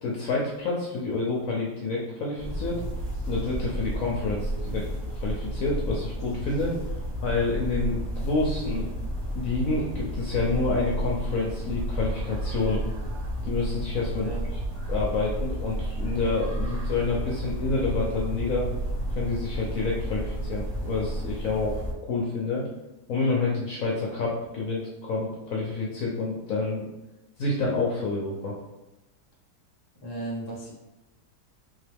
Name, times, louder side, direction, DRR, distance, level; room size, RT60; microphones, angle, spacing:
voice 1, 0.0-2.8 3.3-4.9 5.1-6.8 7.2-8.9 9.3-12.8 13.4-14.3 14.9-18.7 19.1-22.7 23.1-26.9 27.4-28.5, left 3 dB, 65° left, -3 dB, 0.9 m, -28 dB
sound 1, 2.4-21.9, right 1 dB, 60° right, 1.9 m, -31 dB
voice 2, 29.9-30.7, right 2 dB, 20° left, -3 dB, 0.8 m, -35 dB
4.0 x 3.2 x 3.4 m, 0.99 s
omnidirectional pair, 1.8 m